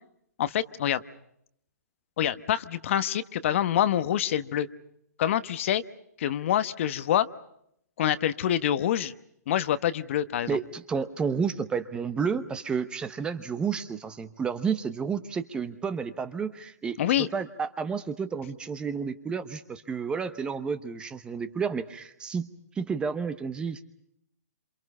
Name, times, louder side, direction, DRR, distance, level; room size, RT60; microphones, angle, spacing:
voice 1, 0.4-1.0 2.2-4.7 5.2-5.8 6.2-7.3 8.0-9.1 9.5-10.6 17.0-17.3, left 11 dB, 45° left, 13 dB, 1.0 m, -26 dB
voice 2, 10.5-23.8, right 6 dB, 10° right, 11 dB, 0.9 m, -31 dB
27.5 x 27.0 x 5.4 m, 0.73 s
hypercardioid pair, 150°, 9 cm